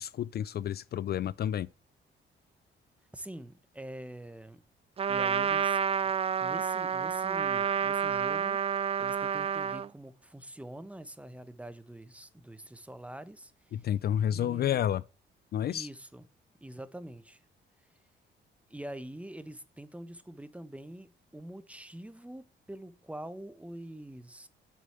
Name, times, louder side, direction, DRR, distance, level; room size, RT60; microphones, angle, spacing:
voice 1, 0.0-1.7 13.7-15.0 15.5-15.9, left 10 dB, 55° left, 0.4 m, -30 dB
voice 2, 3.1-4.6 5.0-6.1 6.4-13.9 14.3-14.8 15.7-16.3 16.6-17.4 18.7-24.5, right 1 dB, 5° right, 1.0 m, -45 dB
Trumpet, 5.0-9.9, right 7 dB, 30° right, 0.4 m, -29 dB
7.6 x 6.9 x 7.7 m
cardioid pair, 90°, 20 cm